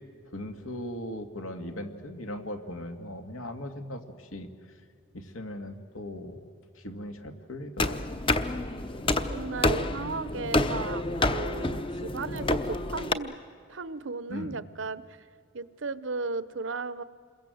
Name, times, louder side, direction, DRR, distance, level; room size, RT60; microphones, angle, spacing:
voice 1, 0.3-4.5 5.1-6.4 6.7-8.3 14.3-14.6, left 1 dB, 80° left, 6 dB, 2.1 m, -38 dB
sound 1, 7.8-13.1, left 2 dB, 25° left, 0.8 m, -28 dB
voice 2, 9.3-13.3 13.7-15.2 15.5-17.0, right 3 dB, 65° right, 16 dB, 0.8 m, -35 dB
28.0 x 22.0 x 7.9 m, 2.2 s
head